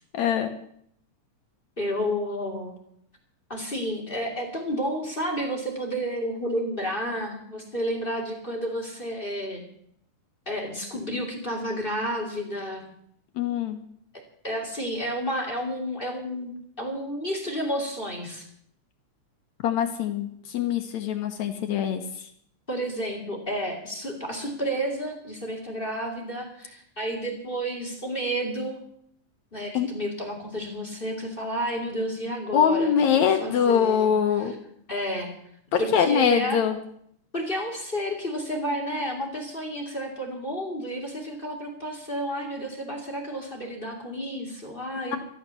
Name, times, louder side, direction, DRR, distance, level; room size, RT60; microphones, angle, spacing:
voice 1, 0.1-0.5 13.4-13.8 19.6-22.0 29.7-29.9 32.5-34.5 35.7-36.8, left 8 dB, 70° left, 6 dB, 2.3 m, -23 dB
voice 2, 1.8-2.8 3.5-9.6 10.5-12.9 14.4-18.4 22.7-28.8 29.5-34.1 34.4-34.6 34.9-35.3 35.8-36.6 37.3-45.2, equal, 15° left, 2 dB, 2.6 m, -31 dB
13.5 x 13.0 x 7.0 m, 0.68 s
omnidirectional pair, 3.5 m